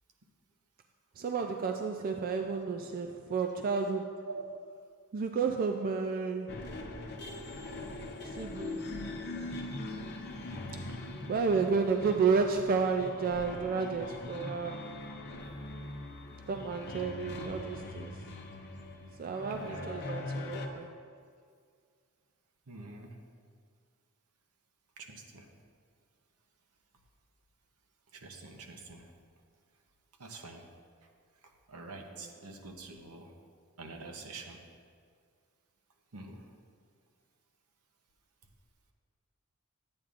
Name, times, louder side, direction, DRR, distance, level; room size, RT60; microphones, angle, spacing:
voice 1, 1.2-4.1 5.1-6.5 8.3-8.8 11.3-14.9 16.5-18.1 19.2-20.9, right 5 dB, 40° right, 4 dB, 0.4 m, -31 dB
sound 1, 6.5-20.7, left 2 dB, 50° left, 0.7 m, -41 dB
voice 2, 19.5-20.0 22.7-23.2 25.0-25.5 28.1-29.1 30.2-30.7 31.7-33.4 33.8-34.6 36.1-36.5, right 3 dB, 80° right, 3 dB, 0.9 m, -46 dB
11.0 x 8.7 x 2.5 m, 2.1 s
head